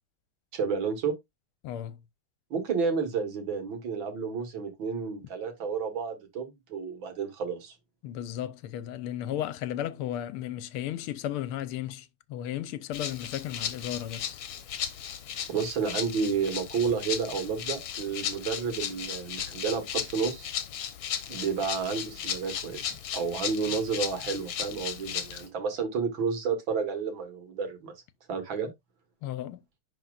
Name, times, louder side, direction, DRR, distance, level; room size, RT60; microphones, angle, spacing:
voice 1, 0.5-1.1 2.5-7.7 15.5-20.5 21.3-27.9 28.3-28.7, right 5 dB, 60° right, 2.2 m, -31 dB
voice 2, 1.6-2.0 8.0-14.4 29.2-29.6, left 11 dB, 85° left, 1.5 m, -34 dB
Rattle (instrument), 12.9-25.5, left 9 dB, 65° left, 1.7 m, -36 dB
10.5 x 4.2 x 2.4 m
omnidirectional pair, 2.4 m